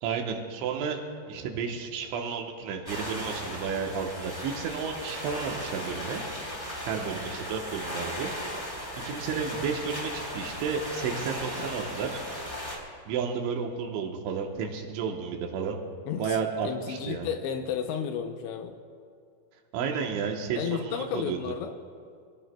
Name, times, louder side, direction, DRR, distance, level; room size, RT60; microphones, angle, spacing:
voice 1, 0.0-6.2 6.9-8.3 8.6-12.2 13.1-15.8 16.2-17.3 19.7-21.4, right 6 dB, 80° right, 2 dB, 3.4 m, -32 dB
sound 1, 2.9-12.8, left 1 dB, 10° left, 3.1 m, -37 dB
voice 2, 16.1-16.4 16.6-18.8 20.6-21.7, left 7 dB, 80° left, 5 dB, 2.7 m, -32 dB
25.5 x 17.0 x 2.3 m, 2.3 s
omnidirectional pair, 5.5 m